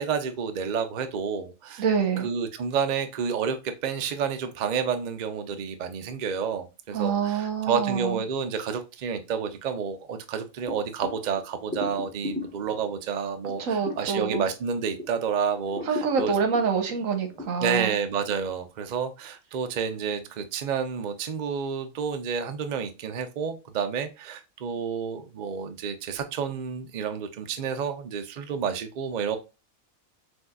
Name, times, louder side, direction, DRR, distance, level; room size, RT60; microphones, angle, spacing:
voice 1, 0.0-1.8 2.2-16.3 17.6-29.4, right 6 dB, 55° right, 0.5 m, -30 dB
voice 2, 1.8-2.3 6.9-8.2 13.6-14.4 15.9-18.0, right 6 dB, 75° right, 1.3 m, -26 dB
sound 1, 10.7-15.3 15.6-17.5, left 2 dB, 5° left, 1.2 m, -38 dB
6.2 x 2.7 x 2.3 m
omnidirectional pair, 1.4 m